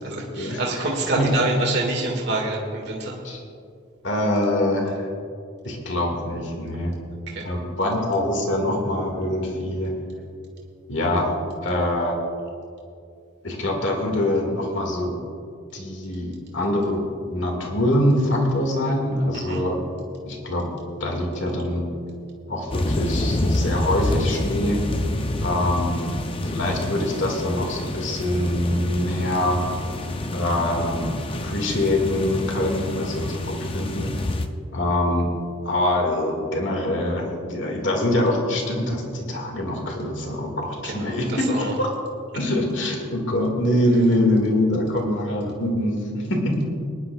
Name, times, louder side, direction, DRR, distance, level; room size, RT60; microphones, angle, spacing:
voice 1, 0.0-3.2 7.3-7.5 19.3-19.6 40.8-41.7, right 2 dB, 55° right, -1 dB, 1.9 m, -26 dB
voice 2, 4.0-5.1 5.6-7.0 7.4-9.9 10.9-12.2 13.4-15.2 15.7-17.0 17.3-19.8 20.2-20.7 21.0-21.8 22.5-24.8 25.4-26.0 26.4-29.6 30.3-34.1 34.7-35.3 35.7-41.9 42.3-46.7, left 1 dB, 65° left, 1 dB, 1.9 m, -24 dB
sound 1, 22.7-34.5, left 1 dB, 25° left, 0.5 m, -27 dB
22.0 x 11.0 x 2.3 m, 2.4 s
head